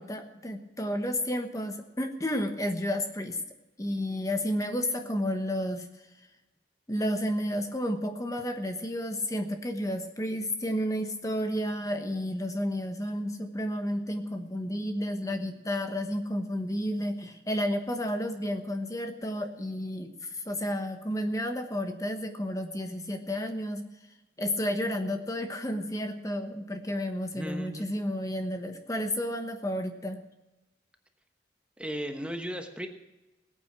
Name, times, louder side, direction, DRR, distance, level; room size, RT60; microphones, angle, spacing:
voice 1, 0.0-3.4 3.8-5.9 6.9-23.8 24.4-30.3, equal, 20° left, 6 dB, 1.1 m, -31 dB
voice 2, 27.3-27.9 31.8-32.9, equal, 5° right, 4 dB, 1.1 m, -36 dB
19.5 x 8.9 x 6.1 m, 1.0 s
head